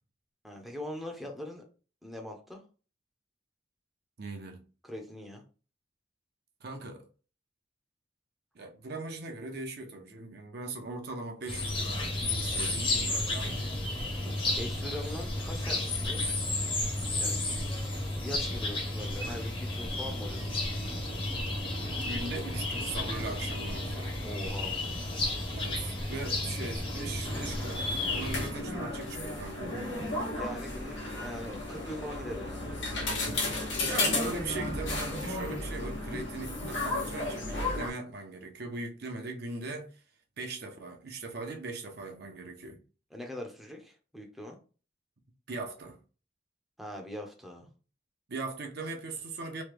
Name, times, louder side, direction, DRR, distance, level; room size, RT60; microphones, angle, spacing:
voice 1, 0.4-1.6 2.0-2.6 4.8-5.4 14.5-16.3 17.2-17.4 18.2-20.5 24.2-24.7 30.4-32.7 43.1-44.6 46.8-47.7, left 1 dB, ahead, 0.5 m, -41 dB
voice 2, 4.2-4.6 6.6-7.1 8.5-13.9 21.9-24.2 25.5-30.0 33.8-40.0 40.4-42.8 45.5-46.0 48.3-49.6, right 3 dB, 60° right, 0.6 m, -40 dB
sound 1, 11.5-28.5, left 2 dB, 30° left, 0.8 m, -32 dB
sound 2, 27.2-37.9, left 2 dB, 90° left, 1.0 m, -34 dB
3.1 x 2.2 x 3.3 m
head